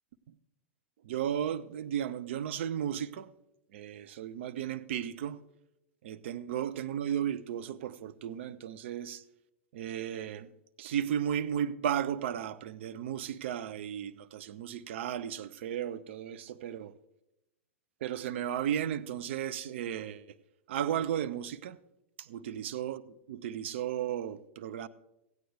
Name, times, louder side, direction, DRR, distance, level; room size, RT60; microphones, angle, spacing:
voice 1, 1.0-3.3 3.7-5.4 6.0-9.2 9.7-10.5 10.8-16.9 18.0-20.3 20.7-21.8 22.2-24.9, right 10 dB, 60° right, 0.6 m, -34 dB
16.0 x 9.3 x 3.4 m
hypercardioid pair, 100°, 7 cm